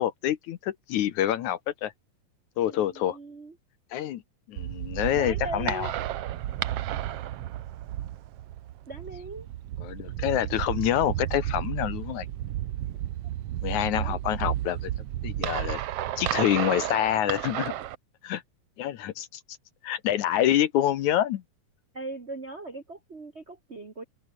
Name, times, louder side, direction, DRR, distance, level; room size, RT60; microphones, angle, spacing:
voice 1, 0.0-1.9 2.6-3.2 3.9-4.2 4.5-5.9 9.8-12.3 13.6-14.9 15.2-15.8 16.2-17.7 18.2-18.4 18.8-19.4 19.8-21.4, left 12 dB, 65° left, 2.1 m, -27 dB
voice 2, 2.7-3.5 5.1-5.9 8.9-9.5 14.0-14.2 17.5-17.6 21.9-24.0, right 2 dB, 50° right, 0.7 m, -39 dB
sound 1, 4.6-18.0, right 13 dB, 80° right, 1.3 m, -32 dB
omnidirectional pair, 4.1 m